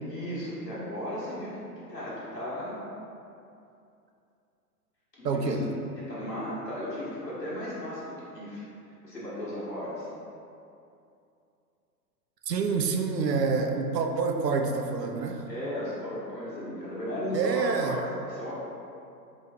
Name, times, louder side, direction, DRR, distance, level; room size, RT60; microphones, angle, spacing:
voice 1, 0.0-2.9 5.1-5.7 6.0-8.6 9.0-10.1 15.5-18.5, left 1 dB, 90° left, -8 dB, 1.4 m, -35 dB
voice 2, 5.2-5.6 12.5-15.4 17.3-18.0, right 4 dB, 90° right, 4 dB, 0.6 m, -27 dB
4.0 x 3.1 x 3.3 m, 2.6 s
figure-of-eight pair, 105°, 48 cm